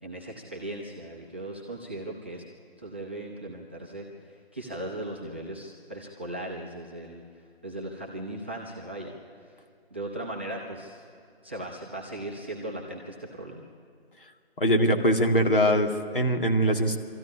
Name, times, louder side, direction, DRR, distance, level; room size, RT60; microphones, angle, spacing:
voice 1, 0.0-2.4 2.8-7.2 7.6-9.1 9.9-11.0 11.4-13.6, right 1 dB, 10° right, -3 dB, 0.7 m, -38 dB
voice 2, 14.6-17.0, equal, 55° left, 3 dB, 2.2 m, -22 dB
21.5 x 14.0 x 10.0 m, 2.2 s
figure-of-eight pair, 160°, 31 cm